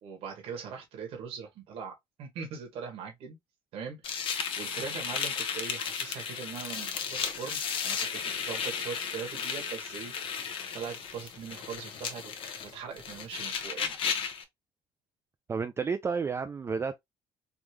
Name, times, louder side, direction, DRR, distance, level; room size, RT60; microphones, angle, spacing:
voice 1, 0.0-3.4 3.7-10.1 10.7-12.3 12.6-14.1, right 6 dB, 65° right, 1.3 m, -41 dB
sound 1, 4.0-14.4, left 7 dB, 55° left, 0.9 m, -34 dB
voice 2, 15.5-17.0, right 5 dB, 25° right, 0.4 m, -31 dB
3.6 x 2.4 x 3.0 m
supercardioid pair, 95°, 11 cm